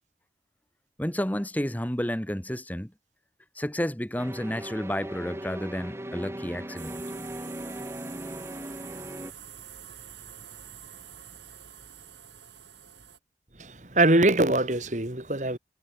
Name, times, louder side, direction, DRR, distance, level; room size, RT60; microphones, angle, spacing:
voice 1, 1.0-2.9 3.5-7.0, equal, 10° left, 1.4 m, -31 dB
sound 1, 4.2-9.3, right 1 dB, 15° right, 1.4 m, -38 dB
sound 2, 6.8-13.2, right 8 dB, 80° right, 6.5 m, -46 dB
voice 2, 13.6-15.6, right 2 dB, 40° right, 2.2 m, -23 dB
head